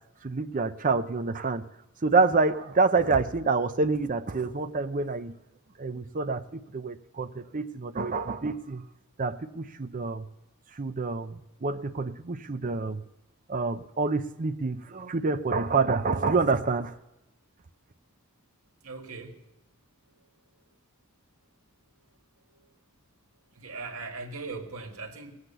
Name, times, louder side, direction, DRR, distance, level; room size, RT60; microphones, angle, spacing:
voice 1, 0.2-1.6 2.0-5.3 5.8-8.8 9.2-10.2 10.8-13.0 13.5-17.0, right 4 dB, 35° right, 9 dB, 0.6 m, -27 dB
voice 2, 18.8-19.4 23.6-25.3, right 3 dB, 75° right, 3 dB, 1.8 m, -39 dB
18.0 x 8.0 x 6.7 m, 0.97 s
head